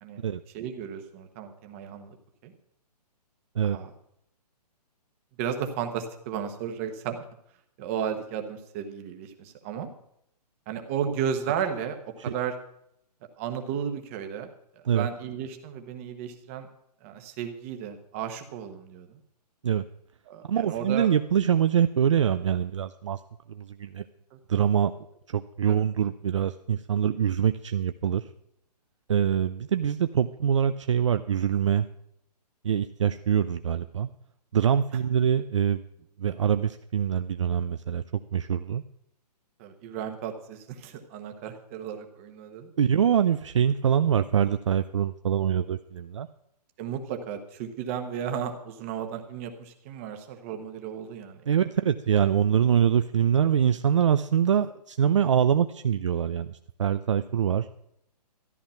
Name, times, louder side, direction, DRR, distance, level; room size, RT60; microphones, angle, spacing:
voice 1, 0.5-2.2 2.4-2.5 3.6-3.9 5.4-7.2 7.8-9.9 10.7-12.5 13.4-14.5 14.9-16.7 17.0-19.2 20.3-21.1 24.3-24.6 25.7-25.8 39.6-42.7 46.8-51.4, right 8 dB, 20° right, 6 dB, 1.2 m, -34 dB
voice 2, 20.5-23.2 23.5-24.0 24.5-24.9 25.3-28.3 29.1-31.9 32.6-34.1 34.5-35.8 36.2-38.8 42.8-46.3 51.5-57.7, right 8 dB, 45° right, 10 dB, 0.5 m, -24 dB
13.5 x 11.0 x 5.7 m, 0.74 s
hypercardioid pair, 170°, 21 cm